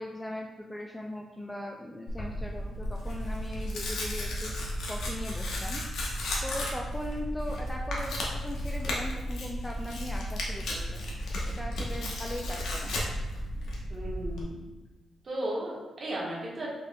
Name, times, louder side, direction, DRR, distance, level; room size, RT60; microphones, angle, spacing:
voice 1, 0.0-4.5 4.9-5.8 6.4-11.0 11.5-13.0, left 1 dB, 5° left, 0 dB, 0.3 m, -39 dB
Tearing, 2.1-14.4, left 1 dB, 80° left, 1.0 m, -34 dB
voice 2, 13.9-14.6 15.2-16.7, right 1 dB, 35° right, -5 dB, 1.3 m, -35 dB
5.2 x 4.2 x 2.3 m, 1.2 s
cardioid pair, 140°, 0 cm